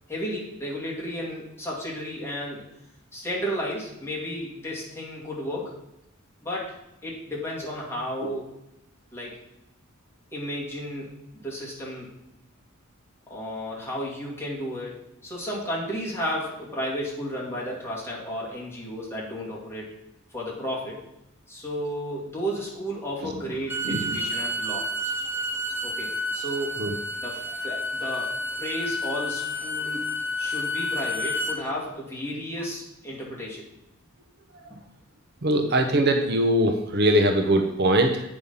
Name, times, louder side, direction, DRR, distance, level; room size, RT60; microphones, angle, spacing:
voice 1, 0.1-2.6 3.1-5.7 6.4-6.8 7.0-8.5 9.1-9.4 10.3-12.2 13.3-19.9 20.3-21.0 21.5-25.1 25.8-26.8 27.2-30.1 30.4-33.7 34.7-34.8, equal, 10° left, -5 dB, 2.3 m, -33 dB
Bowed string instrument, 23.5-31.6, equal, 10° right, 0.8 m, -30 dB
voice 2, 23.8-24.2 26.8-26.9 34.5-34.7 35.4-38.2, right 1 dB, 50° right, 5 dB, 0.8 m, -22 dB
8.4 x 5.2 x 5.5 m, 0.87 s
head